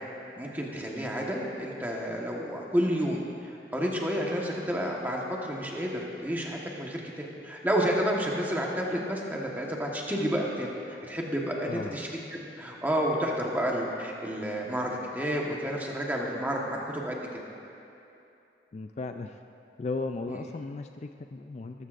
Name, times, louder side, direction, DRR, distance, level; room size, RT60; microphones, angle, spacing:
voice 1, 0.4-17.2 20.3-20.4, equal, 10° right, -2 dB, 1.3 m, -30 dB
voice 2, 11.7-12.0 18.7-19.4 19.8-21.9, left 3 dB, 35° left, 6 dB, 0.3 m, -36 dB
19.5 x 14.0 x 2.5 m, 2.7 s
head